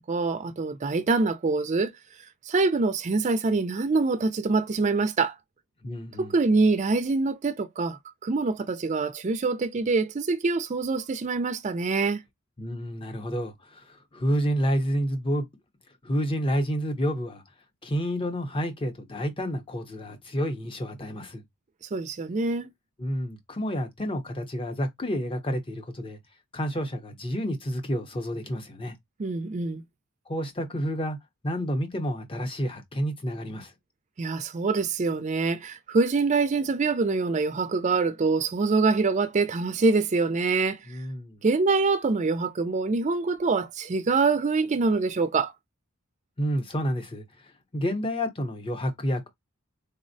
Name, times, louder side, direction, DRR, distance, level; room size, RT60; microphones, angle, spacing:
voice 1, 0.1-1.9 2.5-5.3 6.2-12.2 21.9-22.7 29.2-29.8 34.2-40.8 41.4-45.5, right 3 dB, 30° right, 0.4 m, -25 dB
voice 2, 5.8-6.4 12.6-15.5 16.0-17.4 17.8-21.4 23.0-26.2 26.5-29.0 30.3-31.2 31.4-33.7 40.9-41.4 46.4-47.2 47.7-49.3, equal, 25° left, 0.6 m, -29 dB
4.1 x 2.0 x 2.6 m
head